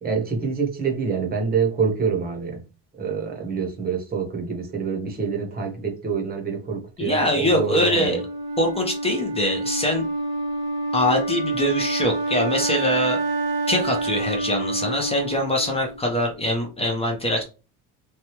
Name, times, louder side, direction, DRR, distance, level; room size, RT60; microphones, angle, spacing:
voice 1, 0.0-2.6 3.0-8.2, right 5 dB, 20° right, 0.9 m, -26 dB
voice 2, 7.0-8.2 8.6-10.1 10.9-13.2 13.7-17.4, left 1 dB, 15° left, 0.6 m, -23 dB
Wind instrument woodwind instrument, 8.1-16.1, right 2 dB, 60° right, 1.0 m, -27 dB
3.2 x 2.3 x 2.8 m
cardioid pair, 130°, 43 cm